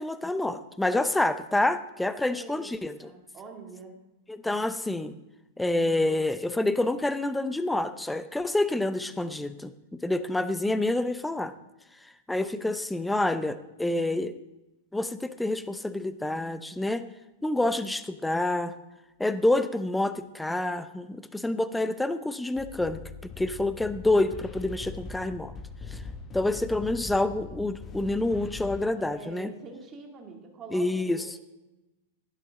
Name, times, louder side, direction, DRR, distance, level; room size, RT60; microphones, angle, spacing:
voice 1, 0.0-3.1 4.3-5.1 5.6-11.5 12.3-14.3 14.9-17.0 17.4-18.7 19.2-23.0 23.4-25.5 25.9-26.0 26.3-29.5 30.7-31.4, left 2 dB, 5° left, 12 dB, 0.6 m, -27 dB
voice 2, 2.2-2.7 3.0-3.9 29.0-31.4, right 4 dB, 25° right, 1 dB, 2.4 m, -45 dB
sound 1, 22.6-28.8, left 5 dB, 25° left, 1.0 m, -42 dB
11.0 x 11.0 x 3.8 m, 1.0 s
hypercardioid pair, 100°, 0 cm